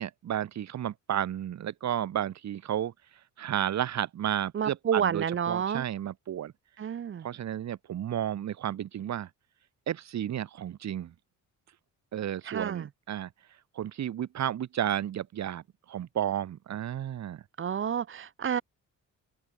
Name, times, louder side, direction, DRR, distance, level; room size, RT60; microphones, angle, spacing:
voice 1, 0.0-2.9 3.4-6.5 7.2-9.3 9.9-11.1 12.1-13.3 13.7-17.4, right 10 dB, 60° right, 2.6 m, -32 dB
voice 2, 4.5-5.8 6.8-7.2 12.4-12.9 17.6-18.6, right 8 dB, 40° right, 1.3 m, -30 dB
open air
wide cardioid pair, 170°, 31 cm